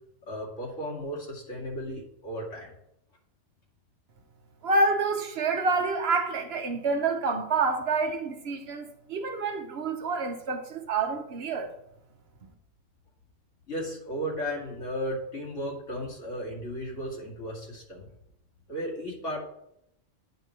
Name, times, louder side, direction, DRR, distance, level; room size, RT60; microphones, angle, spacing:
voice 1, 0.3-2.7 13.7-18.1 18.7-19.4, equal, 85° left, 2.6 m, -35 dB
voice 2, 4.6-11.7, right 3 dB, 60° right, 1.1 m, -28 dB
9.0 x 3.2 x 6.6 m
omnidirectional pair, 1.2 m